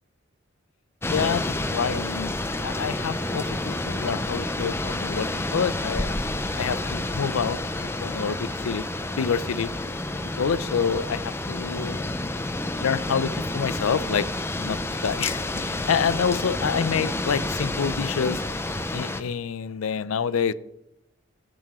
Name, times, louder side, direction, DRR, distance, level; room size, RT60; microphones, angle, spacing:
voice 1, 1.0-6.2 6.6-8.9 9.2-9.7 10.4-12.1 12.8-18.4 18.9-20.5, left 6 dB, 90° left, 18 dB, 0.4 m, -27 dB
sound 1, 1.0-19.2, left 2 dB, 10° left, 0.5 m, -29 dB
14.0 x 6.0 x 4.3 m, 0.84 s
head